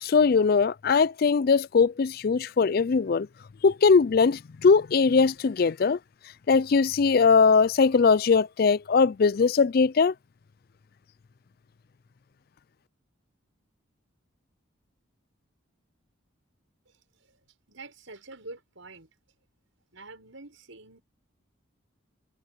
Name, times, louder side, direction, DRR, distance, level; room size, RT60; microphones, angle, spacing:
voice 1, 0.0-3.3 3.6-6.0 6.5-10.1, left 5 dB, 45° left, 0.4 m, -21 dB
voice 2, 16.9-17.4 17.7-19.1 19.9-21.0, right 3 dB, 70° right, 6.3 m, -46 dB
head